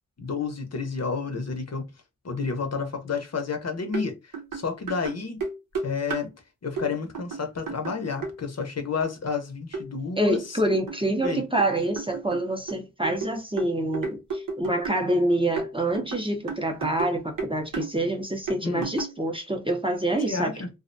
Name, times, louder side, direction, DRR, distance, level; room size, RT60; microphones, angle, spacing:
voice 1, 0.2-1.9 2.2-5.4 5.8-6.3 6.6-10.6 11.2-11.4 18.6-18.9 20.3-20.7, left 5 dB, 50° left, 0.6 m, -30 dB
sound 1, 3.9-4.1 4.3-6.3 6.8-6.9 7.1-8.3 9.0-9.1 9.7-9.9 10.3-11.7 12.0-15.1 15.6-17.1 17.4-17.9 18.5-19.2, right 4 dB, 80° right, 0.8 m, -33 dB
voice 2, 10.2-20.5, right 1 dB, 15° right, 0.5 m, -26 dB
2.4 x 2.1 x 2.5 m
wide cardioid pair, 70°, 33 cm